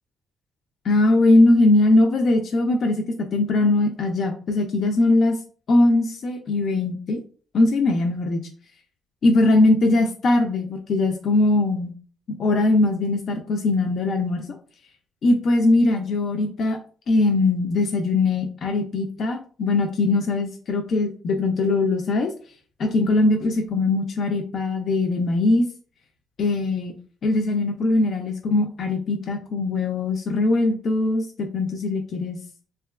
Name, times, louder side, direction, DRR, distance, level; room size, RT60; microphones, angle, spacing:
voice 1, 0.8-3.0 3.3-5.4 5.7-7.2 7.5-8.5 9.2-11.9 12.4-14.5 15.2-16.8 17.1-22.3 22.8-25.7 26.4-26.9 27.2-32.4, left 2 dB, 60° left, 3 dB, 0.3 m, -20 dB
2.8 x 2.3 x 2.2 m, 0.42 s
cardioid pair, 90°, 0 cm